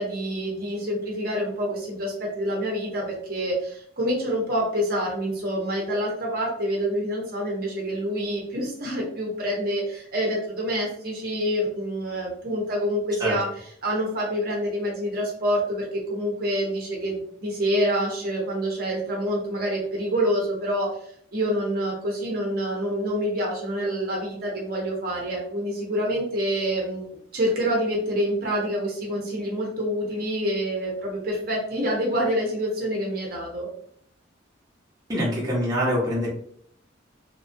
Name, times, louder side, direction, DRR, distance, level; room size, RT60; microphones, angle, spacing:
voice 1, 0.0-13.5 13.8-21.0 21.3-27.0 27.3-33.7, equal, 50° right, -2 dB, 0.8 m, -27 dB
voice 2, 35.1-36.3, equal, 20° right, -6 dB, 0.8 m, -24 dB
3.0 x 2.3 x 2.6 m, 0.63 s
head